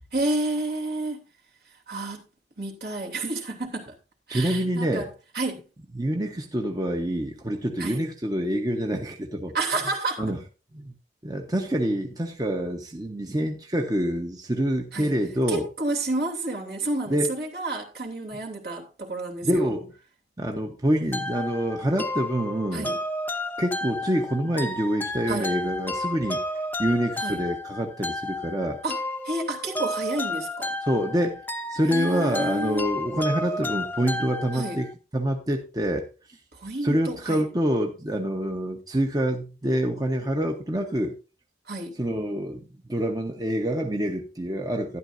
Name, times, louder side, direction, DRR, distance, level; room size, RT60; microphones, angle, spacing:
voice 1, 0.1-1.2 1.7-2.2 2.6-4.0 4.3-5.1 5.3-5.6 7.8-8.0 9.5-10.2 14.9-15.1 15.5-19.7 22.7-23.0 25.3-25.5 27.2-27.4 28.8-30.8 31.8-32.9 34.5-34.8 36.5-37.4 41.7-42.0, right 2 dB, 60° right, 3.0 m, -30 dB
voice 2, 4.3-5.1 5.9-9.5 10.2-10.4 10.7-10.9 11.2-15.7 17.1-17.3 19.4-20.0 20.4-23.0 23.6-28.8 30.8-31.4 31.7-36.4 36.8-41.2 42.0-42.6 42.9-45.0, equal, 20° right, 1.0 m, -26 dB
sound 1, 21.1-34.9, left 1 dB, 10° left, 0.8 m, -32 dB
12.5 x 11.5 x 2.6 m
head